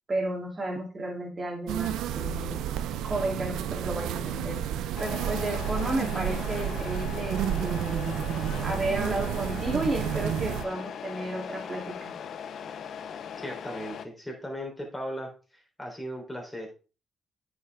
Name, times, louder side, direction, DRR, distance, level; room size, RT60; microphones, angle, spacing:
voice 1, 0.1-2.6 3.0-4.6 5.0-8.2 8.6-12.1, right 2 dB, 35° right, 1 dB, 3.0 m, -32 dB
sound 1, 1.7-10.6, right 10 dB, 90° right, 0.5 m, -31 dB
Truck, 5.0-14.1, left 8 dB, 65° left, 0.6 m, -39 dB
voice 2, 13.4-16.7, equal, 10° left, 0 dB, 3.7 m, -37 dB
9.2 x 6.0 x 3.6 m, 0.35 s
cardioid pair, 75°, 0 cm